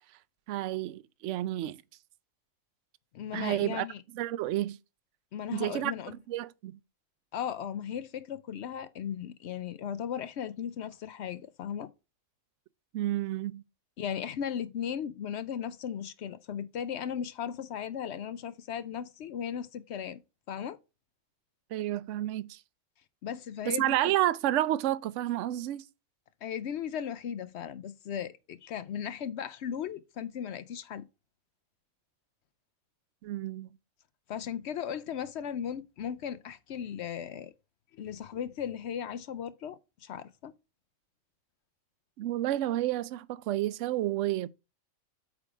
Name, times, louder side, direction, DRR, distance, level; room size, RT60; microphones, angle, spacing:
voice 1, 0.5-1.8 3.3-3.9 4.1-4.8 5.5-5.9 6.3-6.8 12.9-13.6 21.7-22.6 23.7-25.8 33.2-33.7 42.2-44.5, right 14 dB, 70° right, 0.8 m, -30 dB
voice 2, 3.1-4.0 5.3-6.1 7.3-11.9 14.0-20.2 20.5-20.8 23.2-23.9 26.4-31.1 34.3-37.5 38.0-40.5, left 8 dB, 65° left, 0.8 m, -36 dB
8.2 x 3.5 x 4.8 m
omnidirectional pair, 1.4 m